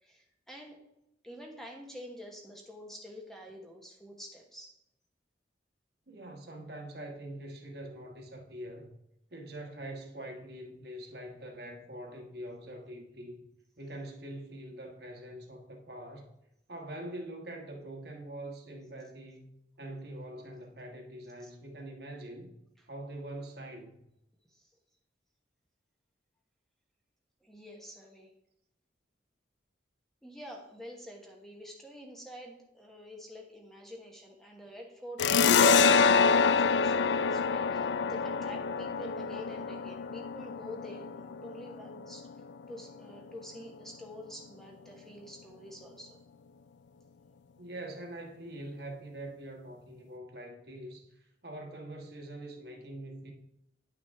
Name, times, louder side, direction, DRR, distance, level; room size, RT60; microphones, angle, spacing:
voice 1, 0.0-0.8 1.2-4.8 21.4-21.5 24.5-24.7 27.4-28.3 30.2-42.3 42.7-46.2, equal, ahead, 1.1 m, -47 dB
voice 2, 6.1-8.9 9.3-13.4 13.8-16.3 16.7-19.5 19.8-22.5 22.9-24.0 47.6-53.3, right 1 dB, 60° right, 1.4 m, -44 dB
sound 1, 35.2-42.4, left 5 dB, 70° left, 0.3 m, -26 dB
10.0 x 5.9 x 3.5 m
head